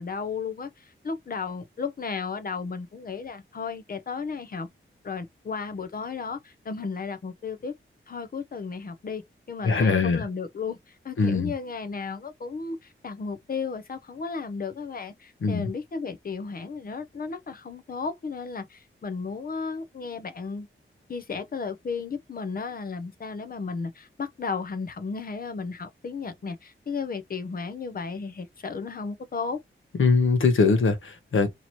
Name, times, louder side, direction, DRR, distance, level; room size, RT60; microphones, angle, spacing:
voice 1, 0.0-4.7 5.0-7.7 8.1-9.2 9.5-20.7 21.1-29.6, left 5 dB, 45° left, 0.7 m, -34 dB
voice 2, 9.6-10.2 11.2-11.5 15.4-15.7 30.0-31.5, left 4 dB, 70° left, 1.0 m, -22 dB
2.9 x 2.9 x 4.3 m
wide cardioid pair, 160°, 21 cm